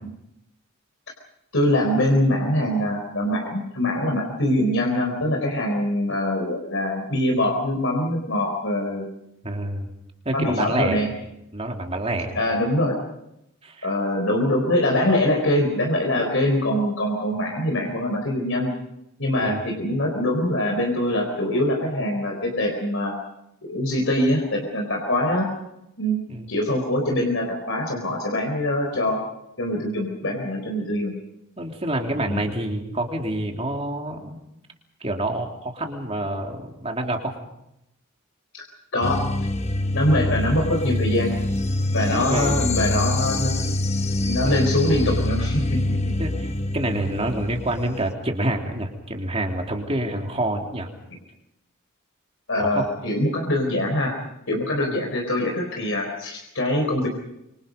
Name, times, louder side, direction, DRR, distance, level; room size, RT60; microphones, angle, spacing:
voice 1, 1.5-9.0 10.3-11.1 12.4-13.0 13.8-18.7 19.2-23.2 23.7-25.5 26.0-26.2 26.5-29.2 29.6-31.1 32.3-32.5 38.5-38.6 38.9-39.2 39.9-41.3 41.9-43.5 44.2-46.1 52.5-54.2 54.5-57.1, left 1 dB, 65° left, 1 dB, 4.3 m, -23 dB
voice 2, 9.4-9.9 10.2-11.0 11.5-12.4 13.6-13.9 19.4-19.6 26.3-26.5 31.6-34.4 35.0-37.3 42.1-42.9 44.4-44.6 46.2-50.9 52.6-52.8, right 1 dB, 30° right, 2 dB, 3.4 m, -27 dB
sound 1, 39.0-48.1, left 2 dB, 30° left, 1.1 m, -25 dB
26.5 x 25.5 x 5.4 m, 0.83 s
head